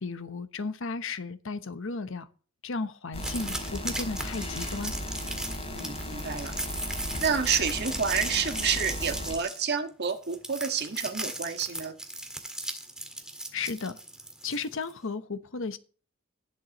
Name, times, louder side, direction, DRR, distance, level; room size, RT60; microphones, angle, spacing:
voice 1, 0.0-2.3 2.6-4.9 13.5-14.0 14.4-15.8, left 4 dB, 65° left, 0.9 m, -34 dB
sound 1, 3.1-9.3, left 1 dB, 30° left, 3.2 m, -36 dB
sound 2, 3.2-14.9, right 1 dB, 5° right, 1.8 m, -37 dB
voice 2, 5.7-6.5 7.2-11.9, right 6 dB, 50° right, 1.6 m, -29 dB
19.5 x 7.8 x 3.0 m
head